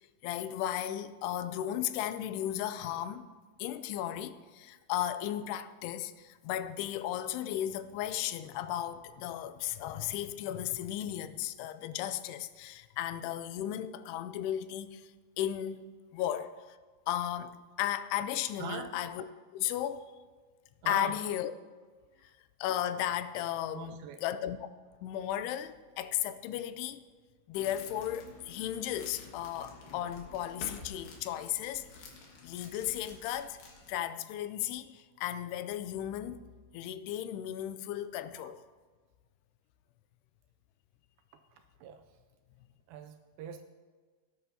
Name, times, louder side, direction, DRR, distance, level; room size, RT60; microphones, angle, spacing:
voice 1, 0.2-3.3 3.6-15.1 15.4-16.8 17.1-19.2 19.5-20.1 20.9-21.5 22.6-24.7 25.0-27.0 27.5-32.0 32.4-33.6 33.9-36.4 36.7-38.6, left 11 dB, 85° left, 2.6 m, -35 dB
voice 2, 18.6-18.9 20.8-21.2 23.7-24.2 38.4-38.5 41.5-42.0 42.9-43.6, right 8 dB, 80° right, 2.2 m, -42 dB
sound 1, 27.5-34.0, left 3 dB, 65° left, 3.1 m, -50 dB
18.0 x 9.8 x 2.8 m
omnidirectional pair, 4.6 m